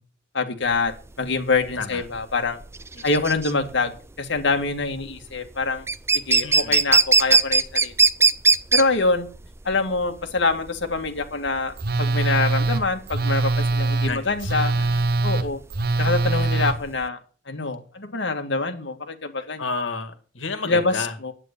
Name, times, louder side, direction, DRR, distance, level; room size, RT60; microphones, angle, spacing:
voice 1, 0.3-2.6 3.0-5.9 6.1-8.0 8.7-9.3 9.6-14.7 15.2-15.6 16.0-17.2 17.5-19.6 20.6-21.3, left 3 dB, 65° left, 5 dB, 2.0 m, -25 dB
sound 1, 0.7-17.1, right 4 dB, 15° right, 0.5 m, -22 dB
voice 2, 6.4-6.8 14.1-15.3 19.6-21.2, left 4 dB, 90° left, 9 dB, 1.9 m, -32 dB
Telephone, 11.8-16.7, right 2 dB, 55° right, 1.0 m, -23 dB
11.0 x 9.3 x 6.8 m, 0.40 s
head